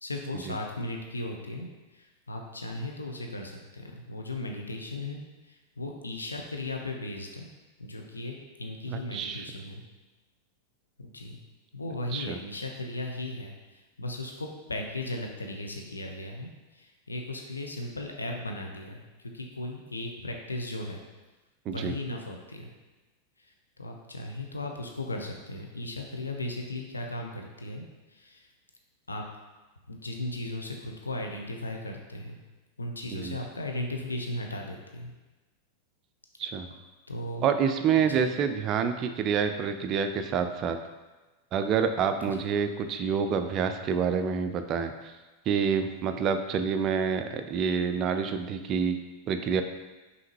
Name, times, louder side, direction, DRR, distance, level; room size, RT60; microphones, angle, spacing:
voice 1, 0.0-7.5 7.8-9.8 11.0-11.4 11.7-21.0 21.7-22.7 23.4-23.5 23.8-28.5 29.1-29.2 29.9-32.4 32.8-35.1 37.1-37.5 38.0-38.2 42.3-42.4, left 2 dB, 80° left, 2 dB, 0.5 m, -37 dB
voice 2, 8.9-9.5 12.1-12.4 21.7-21.9 33.1-33.4 36.4-36.7 37.4-40.8 41.5-44.9 45.5-49.0 49.3-49.6, right 6 dB, 35° right, 8 dB, 0.3 m, -27 dB
5.5 x 2.6 x 3.2 m, 1.2 s
figure-of-eight pair, 90°, 0 cm